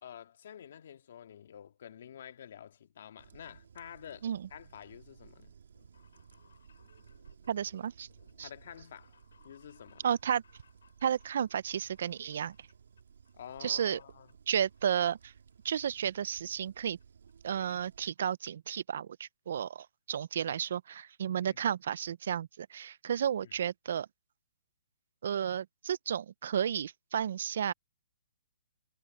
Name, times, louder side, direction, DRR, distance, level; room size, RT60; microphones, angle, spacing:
voice 1, 0.0-5.6 8.4-9.1 9.4-10.1 13.3-14.3 21.4-21.6 23.4-23.5, left 9 dB, 55° left, 2.1 m, -49 dB
sound 1, 3.2-18.1, right 7 dB, 70° right, 3.6 m, -58 dB
sound 2, 5.6-13.4 13.6-14.3 14.7-15.7 16.0-16.1 17.0-17.1 17.3-17.4 17.7-17.8 18.0-18.3 18.7-18.8 19.0-19.1, left 6 dB, 80° left, 5.8 m, -67 dB
voice 2, 7.5-8.1 8.4-8.5 10.0-10.4 11.0-12.6 13.6-14.0 14.5-15.3 15.6-17.0 17.4-24.1 25.2-27.7, right 8 dB, 55° right, 0.5 m, -32 dB
hypercardioid pair, 165°, 0 cm